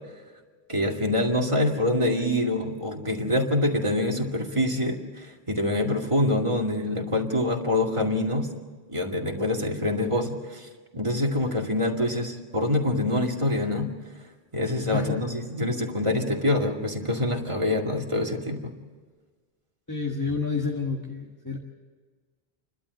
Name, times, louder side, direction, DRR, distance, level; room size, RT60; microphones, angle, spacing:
voice 1, 0.7-8.5 8.9-10.7 10.9-13.9 14.5-18.7, left 1 dB, 30° right, 1 dB, 2.3 m, -25 dB
voice 2, 14.9-15.2 19.9-21.6, left 4 dB, 15° left, -2 dB, 1.7 m, -29 dB
29.5 x 12.5 x 7.8 m, 1.5 s
omnidirectional pair, 1.1 m